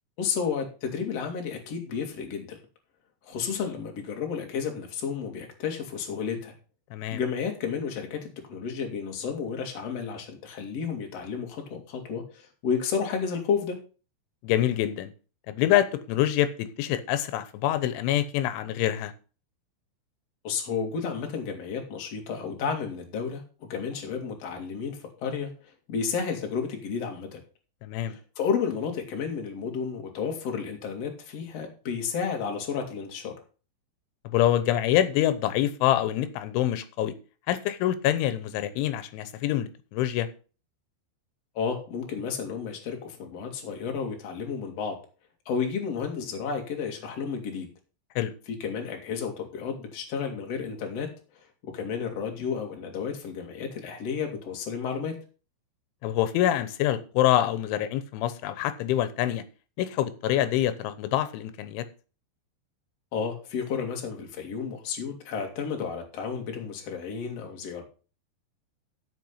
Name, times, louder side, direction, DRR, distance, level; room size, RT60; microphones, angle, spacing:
voice 1, 0.2-2.6 3.2-6.5 7.1-13.8 20.4-23.4 23.7-25.5 25.9-27.4 28.0-33.3 41.5-45.0 45.5-47.7 48.5-51.1 51.4-55.1 63.1-67.8, left 6 dB, 45° left, 2 dB, 2.6 m, -32 dB
voice 2, 14.4-15.1 15.5-19.1 27.8-28.2 34.2-37.1 37.5-40.3 48.2-48.3 56.0-59.4 59.8-61.9, left 12 dB, 90° left, 12 dB, 3.3 m, -26 dB
14.0 x 5.0 x 5.5 m, 0.36 s
omnidirectional pair, 5.5 m